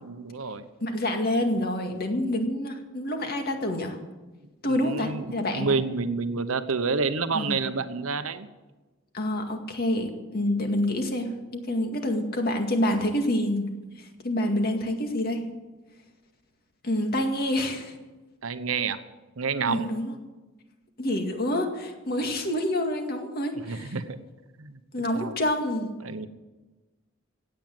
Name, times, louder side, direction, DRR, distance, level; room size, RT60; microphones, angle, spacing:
voice 1, 0.0-0.7 4.7-8.5 18.4-19.0 19.4-19.8 23.7-24.2 24.6-24.8 25.1-25.3 26.0-26.3, right 4 dB, 85° right, 11 dB, 1.0 m, -29 dB
voice 2, 0.8-4.0 4.6-5.7 7.3-7.6 9.1-13.7 14.0-15.4 16.8-17.9 19.7-20.1 21.0-24.0 24.9-25.9, left 1 dB, 50° left, 4 dB, 2.1 m, -27 dB
16.0 x 9.2 x 7.8 m, 1.2 s
head